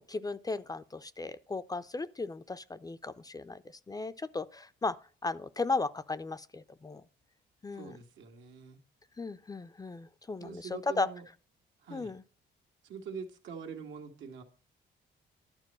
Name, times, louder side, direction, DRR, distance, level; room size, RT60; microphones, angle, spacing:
voice 1, 0.0-5.0 5.2-7.0 7.6-8.0 9.2-11.1 11.9-12.2, left 3 dB, 20° left, 0.5 m, -36 dB
voice 2, 7.7-8.8 10.4-11.2 11.8-12.1 12.8-14.4, right 6 dB, 80° right, 1.9 m, -44 dB
11.5 x 4.5 x 7.4 m
cardioid pair, 95°, 19 cm